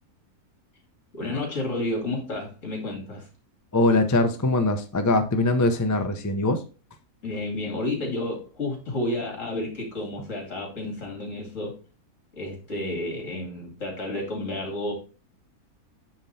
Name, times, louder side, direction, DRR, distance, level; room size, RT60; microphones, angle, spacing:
voice 1, 1.1-3.3 7.2-11.8 12.3-14.9, left 2 dB, 55° left, 2.9 m, -31 dB
voice 2, 3.7-6.6, left 2 dB, 30° left, 0.3 m, -22 dB
8.8 x 3.7 x 4.2 m
omnidirectional pair, 1.6 m